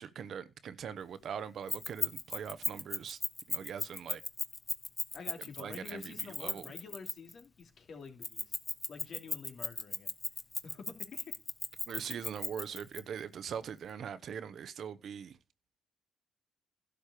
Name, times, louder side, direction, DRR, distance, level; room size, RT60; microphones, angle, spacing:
voice 1, 0.0-3.2 3.5-4.2 5.6-6.7 11.9-15.4, right 7 dB, 60° right, 1.0 m, -42 dB
Keys jangling, 1.7-7.4 8.2-13.0, left 3 dB, 25° left, 1.3 m, -36 dB
voice 2, 5.1-8.5 8.9-10.1 10.6-11.3, left 5 dB, 55° left, 3.1 m, -48 dB
12.0 x 5.2 x 8.4 m
cardioid pair, 90°, 0 cm